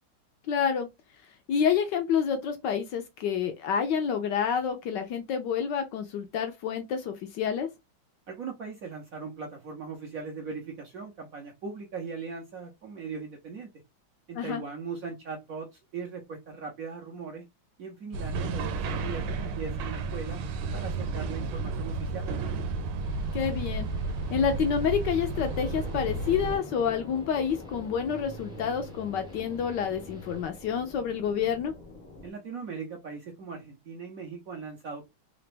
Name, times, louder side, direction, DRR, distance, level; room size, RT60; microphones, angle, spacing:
voice 1, 0.5-0.9 1.5-7.7 14.4-14.6 23.3-23.9 24.3-31.7, left 7 dB, 70° left, 1.2 m, -28 dB
voice 2, 8.3-13.7 14.3-17.5 17.8-20.4 20.7-22.7 32.2-35.1, right 5 dB, 65° right, 0.9 m, -39 dB
sound 1, 18.1-26.6, right 3 dB, 90° right, 1.5 m, -32 dB
sound 2, 23.0-30.4, equal, 5° right, 0.5 m, -47 dB
sound 3, 25.4-32.3, left 2 dB, 50° left, 0.5 m, -45 dB
3.9 x 2.5 x 3.3 m
omnidirectional pair, 2.2 m